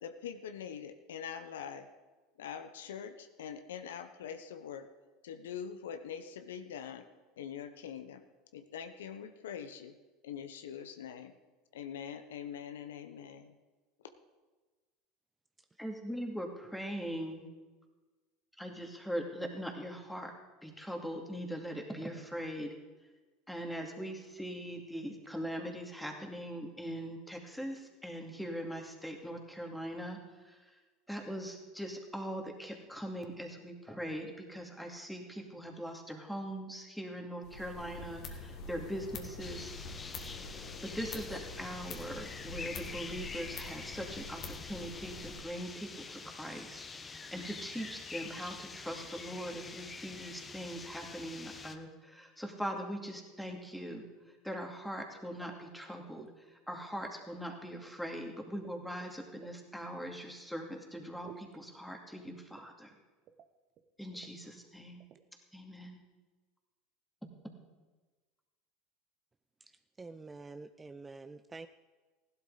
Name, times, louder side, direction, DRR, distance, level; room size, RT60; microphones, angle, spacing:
voice 1, 0.0-1.9 2.4-4.9 5.2-7.1 7.4-8.2 8.5-10.0 10.2-11.3 11.7-13.6, left 8 dB, 80° left, 9 dB, 0.8 m, -43 dB
voice 2, 15.8-17.5 18.6-20.3 20.6-22.8 23.5-30.8 31.1-39.7 40.8-54.1 54.4-62.9 64.0-65.0 65.5-66.0, equal, ahead, 2 dB, 2.4 m, -41 dB
sound 1, 37.4-45.4, left 3 dB, 50° left, 1.8 m, -45 dB
sound 2, 39.4-51.8, left 4 dB, 25° left, 1.1 m, -46 dB
sound 3, 55.4-55.9 56.1-56.3 56.7-58.0 58.5-59.6 61.2-61.6 62.6-63.0 63.3-63.5 63.8-63.9 64.1-64.3 65.0-65.2, right 9 dB, 50° right, 0.9 m, -55 dB
voice 3, 70.0-71.7, right 3 dB, 20° right, 10 dB, 0.5 m, -47 dB
15.5 x 11.5 x 4.0 m, 1.3 s
hypercardioid pair, 85°, 0 cm